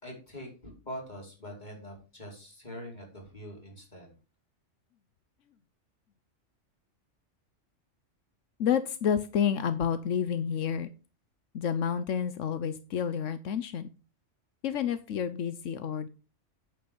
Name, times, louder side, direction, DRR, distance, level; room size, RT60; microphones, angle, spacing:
voice 1, 0.0-4.1, equal, 35° left, -1 dB, 5.1 m, -44 dB
voice 2, 8.6-10.9 11.5-13.9 14.6-16.1, left 8 dB, 85° left, 12 dB, 1.2 m, -29 dB
9.9 x 8.9 x 5.3 m, 0.33 s
omnidirectional pair, 1.3 m